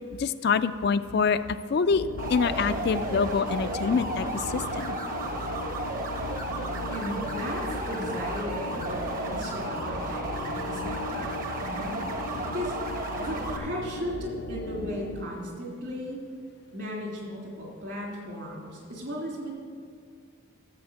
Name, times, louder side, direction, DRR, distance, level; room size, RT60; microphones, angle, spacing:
voice 1, 0.2-1.4 1.7-5.0, left 5 dB, 50° left, 12 dB, 0.3 m, -26 dB
sound 1, 1.9-15.2, left 2 dB, 80° left, 0.7 m, -37 dB
sound 2, 2.2-13.6, right 2 dB, 40° right, 1.1 m, -34 dB
voice 2, 6.9-12.7 13.2-16.2 16.7-19.5, equal, 60° right, -2 dB, 3.2 m, -36 dB
12.0 x 7.3 x 7.1 m, 2.1 s
head